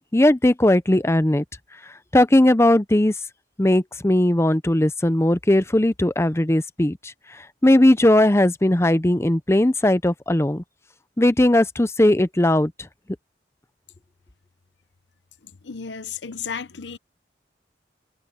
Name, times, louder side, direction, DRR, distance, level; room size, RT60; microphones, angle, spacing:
voice 1, 0.0-1.4 2.1-3.1 3.6-10.6 11.2-12.7, left 1 dB, 15° left, 0.6 m, -18 dB
voice 2, 15.4-17.0, left 6 dB, 80° left, 0.9 m, -34 dB
head